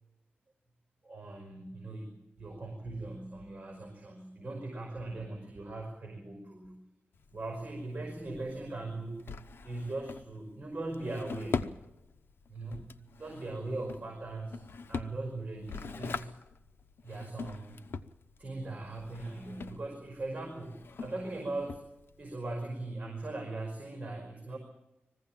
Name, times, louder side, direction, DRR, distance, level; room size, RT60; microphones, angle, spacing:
voice 1, 1.0-6.8 7.3-9.4 9.6-11.7 12.5-14.6 14.9-16.3 17.0-17.8 18.4-21.9 22.2-24.6, right 2 dB, 35° right, 2 dB, 5.3 m, -40 dB
Drawer open or close, 7.1-22.3, left 5 dB, 75° left, 0.9 m, -43 dB
21.0 x 16.0 x 9.0 m, 0.94 s
wide cardioid pair, 105°, 4 cm